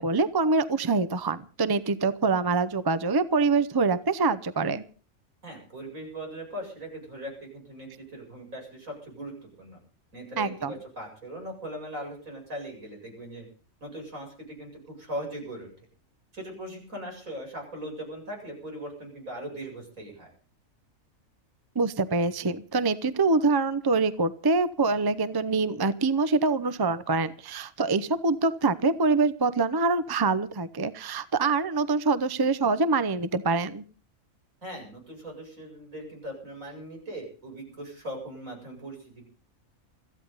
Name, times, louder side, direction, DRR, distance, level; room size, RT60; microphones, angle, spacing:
voice 1, 0.0-4.8 10.4-10.7 21.7-33.8, right 3 dB, 20° right, 13 dB, 0.6 m, -25 dB
voice 2, 5.4-9.8 10.1-13.5 13.8-15.7 16.3-20.3 34.6-39.3, right 1 dB, 85° right, 1 dB, 8.4 m, -39 dB
22.0 x 15.0 x 4.0 m, 0.40 s
omnidirectional pair, 1.4 m